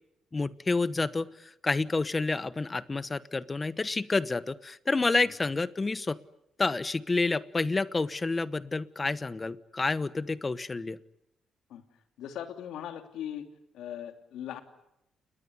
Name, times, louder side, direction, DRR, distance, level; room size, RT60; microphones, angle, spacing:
voice 1, 0.3-6.2 6.6-11.0, left 3 dB, 25° left, 15 dB, 1.0 m, -29 dB
voice 2, 12.2-13.5 13.7-14.6, left 10 dB, 80° left, 6 dB, 3.0 m, -39 dB
29.5 x 20.0 x 9.9 m, 0.85 s
cardioid pair, 90°, 0 cm